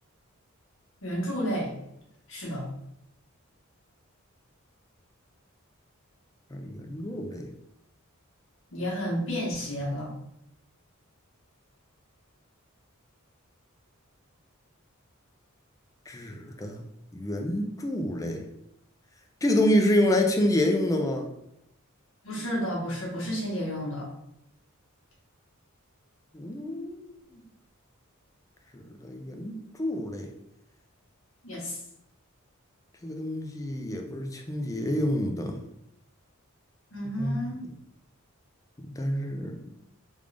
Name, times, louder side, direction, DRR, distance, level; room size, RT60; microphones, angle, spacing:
voice 1, 1.0-1.7 2.3-2.6 8.7-10.1 22.2-24.1 31.4-31.8 36.9-37.6, equal, 65° left, -4 dB, 1.3 m, -31 dB
voice 2, 6.5-7.5 16.1-16.8 17.1-18.4 19.4-21.3 26.3-27.4 28.7-30.3 33.0-35.6 37.2-37.4 38.8-39.6, left 1 dB, 15° left, 3 dB, 0.4 m, -28 dB
3.5 x 2.5 x 3.3 m, 0.79 s
head